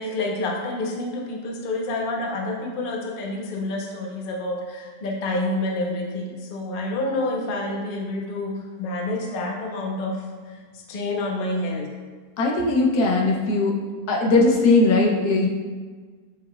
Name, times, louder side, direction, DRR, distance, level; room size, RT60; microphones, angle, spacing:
voice 1, 0.0-11.9, left 2 dB, 45° left, 0 dB, 0.8 m, -28 dB
voice 2, 12.4-13.8 14.1-15.5, left 3 dB, 75° left, -1 dB, 1.3 m, -19 dB
7.0 x 6.2 x 2.3 m, 1.5 s
omnidirectional pair, 1.7 m